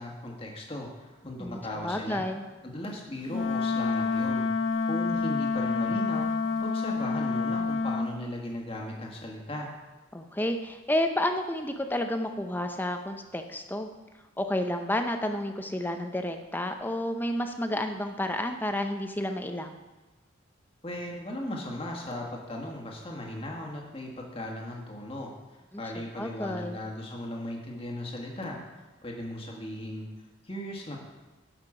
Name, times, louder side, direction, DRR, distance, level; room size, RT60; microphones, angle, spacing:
voice 1, 0.0-2.2 2.6-4.5 4.9-6.3 6.6-9.7 20.8-25.3 25.8-28.6 29.0-30.0 30.4-31.0, left 1 dB, 30° left, 0 dB, 1.5 m, -37 dB
voice 2, 1.4-2.4 10.1-13.9 14.4-19.8 26.0-26.8, left 1 dB, 10° left, 6 dB, 0.6 m, -31 dB
Wind instrument woodwind instrument, 3.3-8.1, left 4 dB, 75° left, 0.8 m, -28 dB
12.0 x 5.9 x 4.9 m, 1.2 s
head